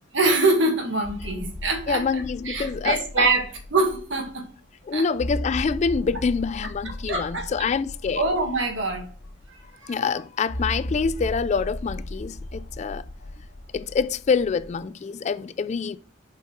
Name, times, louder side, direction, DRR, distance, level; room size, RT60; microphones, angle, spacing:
voice 1, 0.1-4.4 4.9-5.0 7.1-7.4 8.2-9.0 9.8-9.9, right 2 dB, 75° right, 1.8 m, -24 dB
sound 1, 1.0-4.3 4.6-4.7 5.1-9.7 10.5-14.8, left 1 dB, 75° left, 1.0 m, -36 dB
voice 2, 1.9-3.3 4.8-8.2 9.9-13.0 13.7-16.0, left 5 dB, 40° left, 0.3 m, -26 dB
7.1 x 4.6 x 4.6 m
head